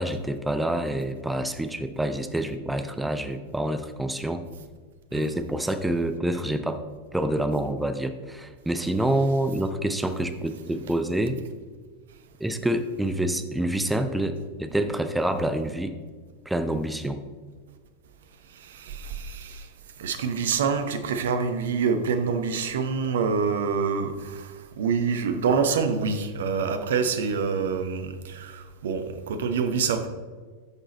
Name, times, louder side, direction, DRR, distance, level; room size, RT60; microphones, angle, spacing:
voice 1, 0.0-4.4 5.1-6.8 7.1-11.4 12.4-16.0 16.5-17.2, right 1 dB, 5° right, 8 dB, 0.7 m, -27 dB
voice 2, 18.6-19.7 20.0-30.1, right 5 dB, 60° right, 8 dB, 0.9 m, -26 dB
11.0 x 6.4 x 4.1 m, 1.5 s
figure-of-eight pair, 90°, 0 cm